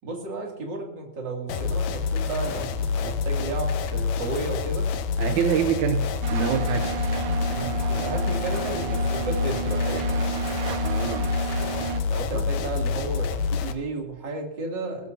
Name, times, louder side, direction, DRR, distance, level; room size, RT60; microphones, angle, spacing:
voice 1, 0.0-4.9 7.5-10.2 12.1-15.1, right 3 dB, 30° right, 0 dB, 2.7 m, -33 dB
sound 1, 1.5-13.7, left 5 dB, 80° left, 1.6 m, -27 dB
voice 2, 5.2-6.9 10.8-11.3 12.3-12.4, right 9 dB, 85° right, 7 dB, 1.7 m, -26 dB
sound 2, 6.2-12.0, right 6 dB, 65° right, 2.7 m, -31 dB
20.5 x 13.5 x 2.7 m, 0.97 s
omnidirectional pair, 4.5 m